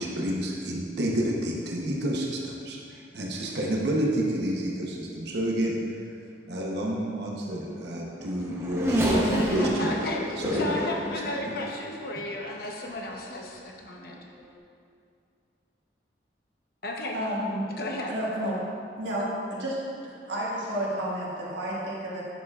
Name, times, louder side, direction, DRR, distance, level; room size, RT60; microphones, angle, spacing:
voice 1, 0.0-5.8 6.5-9.9 10.4-10.8, right 1 dB, 65° right, -2 dB, 0.8 m, -29 dB
Race car auto racing / Accelerating revving vroom, 7.8-12.4 13.1-13.2 14.3-14.5, equal, 15° right, 0.8 m, -30 dB
voice 2, 9.3-14.2 16.8-17.2 17.8-18.1, left 1 dB, 55° left, 0 dB, 0.9 m, -33 dB
voice 3, 17.1-17.6 18.1-18.6 19.0-19.8 20.0-22.2, equal, 85° right, -6 dB, 1.6 m, -31 dB
9.0 x 7.0 x 2.4 m, 2.4 s
head